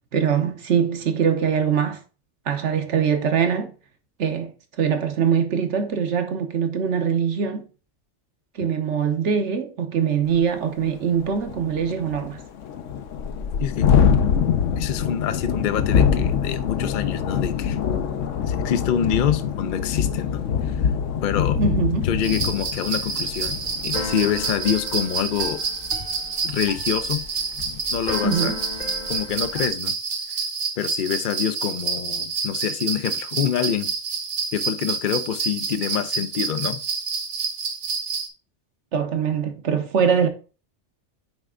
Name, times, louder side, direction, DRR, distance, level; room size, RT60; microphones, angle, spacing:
voice 1, 0.1-2.0 2.5-3.7 4.2-4.5 4.8-7.6 8.5-12.4 21.6-22.1 28.2-28.6 38.9-40.3, right 7 dB, 65° right, 1.2 m, -22 dB
Thunderstorm, 10.4-10.5 10.8-10.9 11.2-24.8, left 7 dB, 75° left, 1.0 m, -24 dB
voice 2, 14.8-17.8 18.5-20.8 21.2-21.6 22.0-25.6 26.4-27.2 27.5-28.5 29.1-29.9 30.8-33.9 34.5-36.8, left 9 dB, 55° left, 0.6 m, -26 dB
sound 1, 22.2-38.3, right 5 dB, 85° right, 1.4 m, -28 dB
Keyboard (musical), 23.0-29.7, left 3 dB, 40° left, 1.0 m, -36 dB
9.2 x 3.4 x 3.6 m
omnidirectional pair, 1.3 m